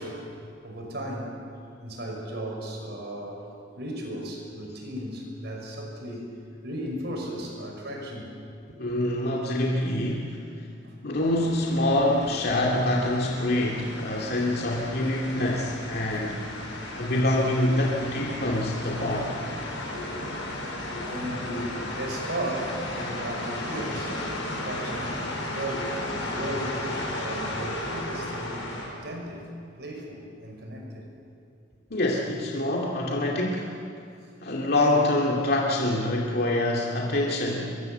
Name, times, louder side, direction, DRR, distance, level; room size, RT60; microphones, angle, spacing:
voice 1, 0.0-1.3 1.8-3.5 3.8-6.3 6.6-8.3 8.6-8.7 10.8-10.9 14.1-14.4 19.9-20.1 20.5-24.2 24.6-28.6 28.9-29.5 29.8-31.1, right 1 dB, 60° right, 1 dB, 6.1 m, -36 dB
voice 2, 8.8-10.5 11.0-16.5 17.0-19.3 31.9-33.7 34.4-37.8, left 1 dB, 55° left, -2 dB, 2.4 m, -25 dB
sound 1, 11.2-28.9, left 1 dB, 85° left, 6.3 m, -34 dB
24.5 x 22.0 x 8.0 m, 2.5 s
head